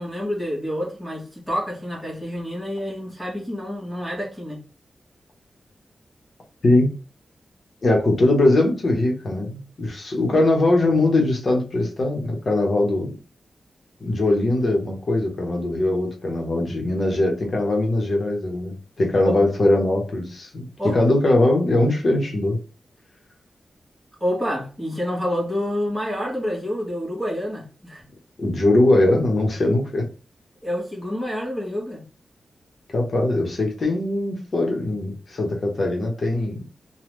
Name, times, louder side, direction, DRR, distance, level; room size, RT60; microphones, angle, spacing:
voice 1, 0.0-4.6 20.8-21.0 24.2-28.0 30.6-32.0, equal, 5° right, 1.3 m, -28 dB
voice 2, 7.8-13.2 14.0-22.6 28.4-30.0 32.9-36.5, left 2 dB, 45° left, 0.9 m, -21 dB
3.4 x 2.2 x 3.1 m
wide cardioid pair, 145°, 0 cm